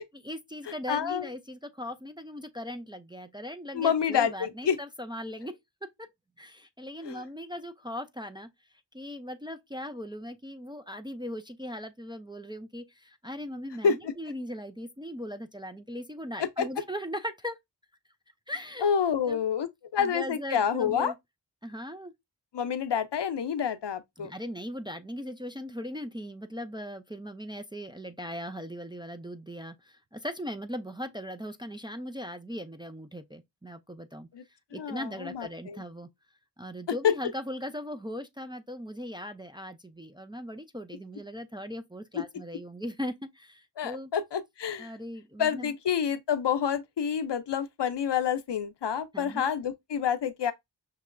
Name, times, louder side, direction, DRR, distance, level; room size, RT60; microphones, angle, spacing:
voice 1, 0.1-5.5 6.0-6.1 6.4-8.5 8.9-17.6 18.5-18.9 19.3-19.4 20.0-21.1 21.6-22.1 24.2-34.3 34.7-36.1 36.6-44.1 44.8-45.7 49.1-49.4, equal, 10° right, 0.4 m, -39 dB
voice 2, 0.9-1.3 3.7-4.8 7.0-7.2 13.8-14.1 16.4-16.7 18.8-21.1 22.5-24.3 34.3-34.4 34.7-35.8 37.0-37.1 42.1-42.2 43.8-44.9 45.4-50.5, left 7 dB, 65° left, 0.6 m, -28 dB
5.4 x 2.9 x 2.5 m
wide cardioid pair, 40°, 45 cm